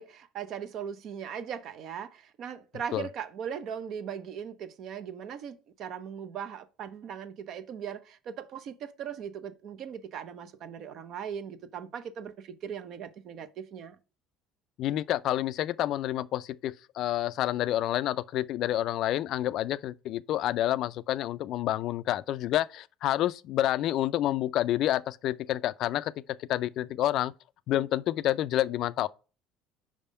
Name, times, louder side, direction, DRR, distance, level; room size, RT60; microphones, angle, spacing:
voice 1, 0.0-14.0, right 8 dB, 55° right, 0.6 m, -39 dB
voice 2, 14.8-26.1 26.5-27.3 27.7-29.1, left 13 dB, 60° left, 0.3 m, -28 dB
5.1 x 3.5 x 5.4 m
supercardioid pair, 110°, 0 cm